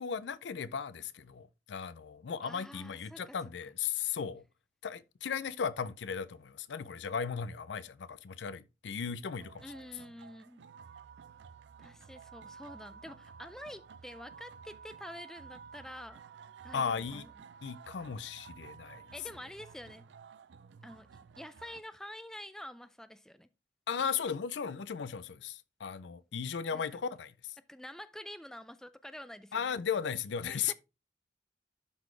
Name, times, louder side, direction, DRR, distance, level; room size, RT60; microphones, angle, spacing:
voice 1, 0.0-4.4 4.8-9.7 16.7-17.2 17.6-19.0 23.9-27.3 29.5-30.7, left 6 dB, 75° left, 0.5 m, -36 dB
voice 2, 2.4-3.4 9.6-10.6 11.8-16.2 16.6-17.3 19.1-20.0 20.8-21.1 21.4-23.5 26.7-27.0 27.7-29.7 30.5-30.7, left 1 dB, 5° left, 0.4 m, -47 dB
sound 1, 9.2-21.8, right 6 dB, 70° right, 0.4 m, -53 dB
12.0 x 4.1 x 3.2 m
head